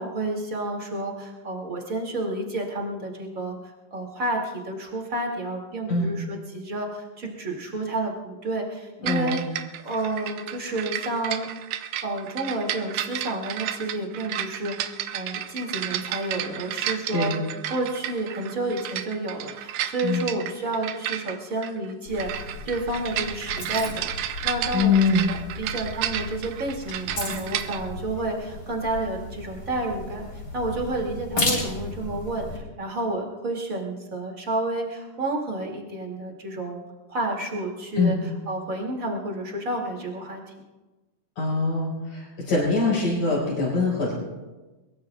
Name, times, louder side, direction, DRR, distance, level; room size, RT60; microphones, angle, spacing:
voice 1, 0.0-3.6 3.9-11.5 12.0-17.4 17.7-30.3 30.5-36.8 37.1-38.2 38.5-40.4, right 2 dB, 25° right, -1 dB, 2.5 m, -30 dB
voice 2, 9.0-9.4 17.1-17.4 20.0-20.3 24.7-25.3 38.0-38.2 41.4-44.1, left 3 dB, 70° left, -7 dB, 6.5 m, -23 dB
sound 1, 9.1-27.8, right 11 dB, 80° right, 2.3 m, -32 dB
sound 2, 22.1-32.6, left 2 dB, 40° left, 5.1 m, -34 dB
22.5 x 22.0 x 2.4 m, 1.2 s
omnidirectional pair, 3.8 m